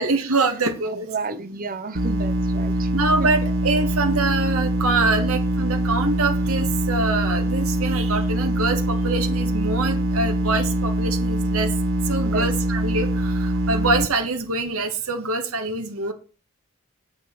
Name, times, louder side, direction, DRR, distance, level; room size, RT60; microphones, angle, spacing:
voice 1, 0.0-1.1 2.9-11.7 12.0-16.1, right 3 dB, 90° right, 1.7 m, -25 dB
voice 2, 1.1-2.9 3.2-3.3 12.2-12.5, right 4 dB, 40° right, 0.9 m, -31 dB
sound 1, 2.0-14.1, right 1 dB, 60° right, 1.2 m, -23 dB
8.7 x 5.2 x 6.7 m
head